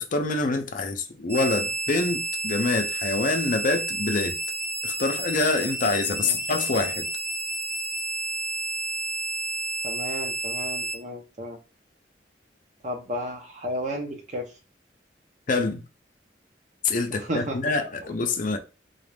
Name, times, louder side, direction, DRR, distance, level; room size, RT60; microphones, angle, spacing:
voice 1, 0.0-4.4 4.8-7.0 15.5-15.8 16.8-18.6, left 3 dB, 50° left, 0.6 m, -26 dB
sound 1, 1.3-11.0, right 2 dB, 15° right, 0.6 m, -30 dB
voice 2, 9.8-11.6 12.8-14.5 17.1-17.6, equal, 45° right, 0.9 m, -33 dB
4.0 x 2.5 x 3.3 m
head